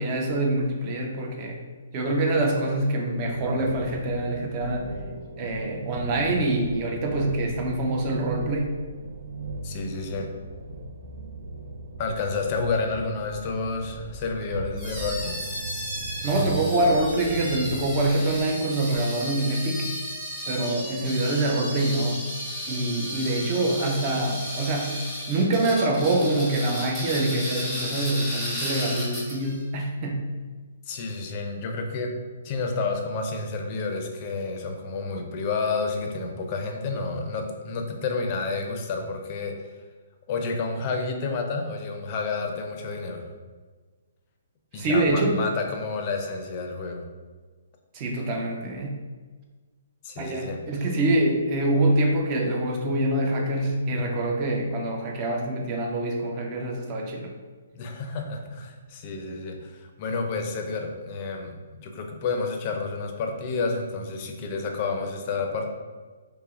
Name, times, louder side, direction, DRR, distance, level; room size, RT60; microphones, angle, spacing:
voice 1, 0.0-1.6 1.9-4.9 5.4-8.7 16.2-19.9 20.5-22.2 22.7-25.0 25.3-30.3 44.7-45.4 47.9-49.0 50.2-57.3, right 1 dB, 30° right, 0 dB, 0.6 m, -25 dB
sound 1, 3.2-18.4, right 3 dB, 85° right, 0.4 m, -37 dB
voice 2, 9.6-10.3 12.0-15.4 30.9-32.1 32.4-39.5 40.3-43.3 44.7-47.1 50.0-50.6 57.7-65.7, left 4 dB, 35° left, 3 dB, 0.5 m, -30 dB
sound 2, 14.8-29.6, equal, ahead, 0.9 m, -34 dB
5.5 x 2.1 x 2.4 m, 1.4 s
hypercardioid pair, 155°, 0 cm